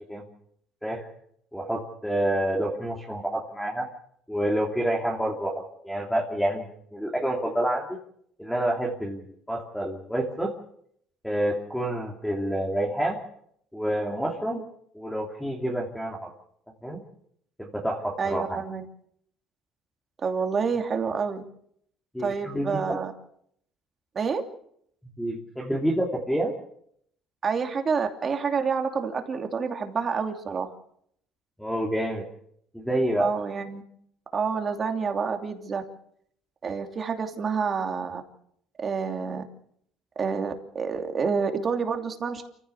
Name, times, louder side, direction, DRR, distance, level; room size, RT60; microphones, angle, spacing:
voice 1, 1.5-3.9 4.3-8.0 8.4-10.5 11.2-13.2 13.7-14.6 14.9-16.3 16.8-17.0 17.6-18.6 22.1-23.0 25.2-26.5 31.6-32.2 32.7-33.3, right 1 dB, ahead, -1 dB, 2.8 m, -28 dB
voice 2, 18.2-18.8 20.2-21.4 22.2-23.1 24.1-24.4 27.4-30.7 33.2-33.8 34.3-35.8 36.6-38.2 38.8-39.4 40.2-42.4, right 5 dB, 30° right, 5 dB, 2.8 m, -28 dB
28.5 x 15.5 x 7.0 m, 0.69 s
cardioid pair, 140°, 0 cm